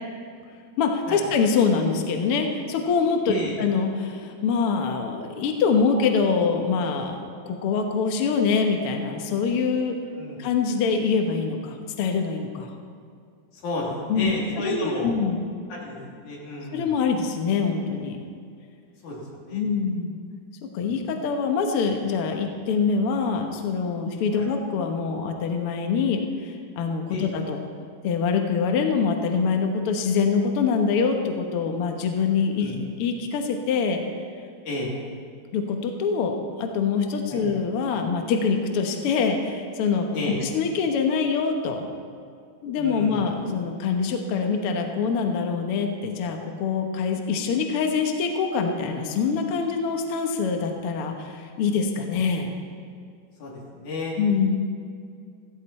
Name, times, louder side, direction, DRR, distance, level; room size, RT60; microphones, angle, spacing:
voice 1, 0.8-10.0 10.4-12.7 14.1-15.4 16.7-18.2 19.5-20.2 20.7-27.7 28.0-34.0 35.5-40.1 40.4-41.8 42.6-52.5 54.2-54.6, left 5 dB, 90° left, 3 dB, 1.2 m, -24 dB
voice 2, 13.6-15.1 15.7-16.9 19.0-19.6 20.8-21.0 24.3-24.5 27.1-27.3 32.6-32.8 34.7-34.9 37.3-37.4 40.1-40.4 42.8-43.2 53.4-53.5 53.8-54.2, left 2 dB, 55° left, -4 dB, 4.0 m, -32 dB
15.5 x 15.0 x 4.3 m, 2.3 s
omnidirectional pair, 4.4 m